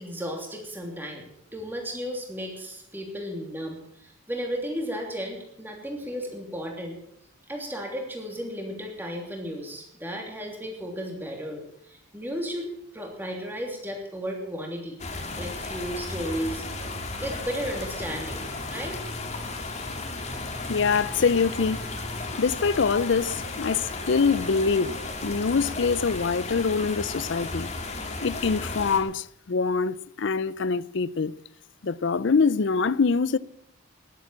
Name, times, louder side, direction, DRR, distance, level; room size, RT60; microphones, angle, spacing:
voice 1, 0.0-7.0 7.5-12.7 12.9-15.0 15.4-16.9 17.2-19.0, equal, 10° right, 3.0 m, -34 dB
sound 1, 15.0-29.0, left 2 dB, 30° left, 2.3 m, -34 dB
Telephone, 16.8-20.1 21.4-22.9 23.4-25.1, right 2 dB, 60° right, 2.7 m, -51 dB
voice 2, 20.7-21.8 22.4-24.9 25.2-27.7 28.2-31.3 31.8-33.4, left 5 dB, 60° left, 0.5 m, -24 dB
19.5 x 8.5 x 7.4 m
head